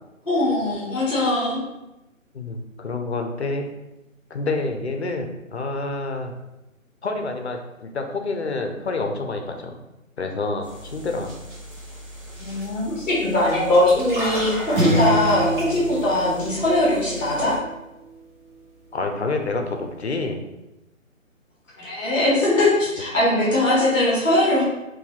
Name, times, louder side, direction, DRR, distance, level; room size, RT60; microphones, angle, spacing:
voice 1, 0.3-1.6 12.4-17.5 21.8-24.6, left 1 dB, 5° left, -6 dB, 0.9 m, -21 dB
voice 2, 2.3-3.7 4.3-6.3 7.0-9.8 10.2-11.3 18.9-20.4, left 3 dB, 55° left, 5 dB, 0.5 m, -28 dB
sound 1, 10.6-17.6, equal, 35° right, 1.2 m, -35 dB
sound 2, 14.7-17.4, right 1 dB, 85° right, 1.0 m, -25 dB
2.7 x 2.7 x 3.8 m, 0.96 s
figure-of-eight pair, 165°, 41 cm